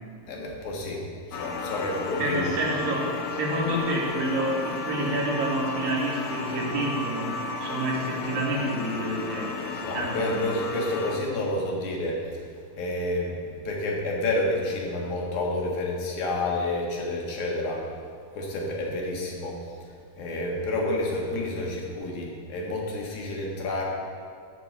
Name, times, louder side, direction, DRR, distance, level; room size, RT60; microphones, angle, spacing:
voice 1, 0.3-1.0 1.3-2.5 9.8-12.4 12.8-17.8 18.3-19.6 20.2-23.8, left 1 dB, 60° left, -2 dB, 2.8 m, -29 dB
sound 1, 1.3-11.2, left 4 dB, 85° left, 1.5 m, -34 dB
voice 2, 2.2-10.5, right 1 dB, 70° right, -4 dB, 3.8 m, -28 dB
12.0 x 5.1 x 8.1 m, 2.3 s
omnidirectional pair, 4.4 m